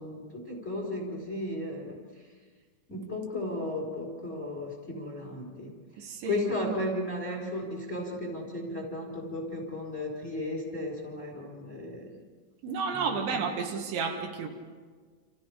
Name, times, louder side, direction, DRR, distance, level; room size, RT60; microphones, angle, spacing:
voice 1, 0.0-2.0 2.9-5.7 6.0-12.2 12.9-13.4, left 2 dB, 15° left, 1 dB, 4.1 m, -35 dB
voice 2, 6.0-6.8 12.6-14.5, right 5 dB, 70° right, 2 dB, 3.9 m, -32 dB
29.5 x 27.5 x 5.2 m, 1.5 s
omnidirectional pair, 5.5 m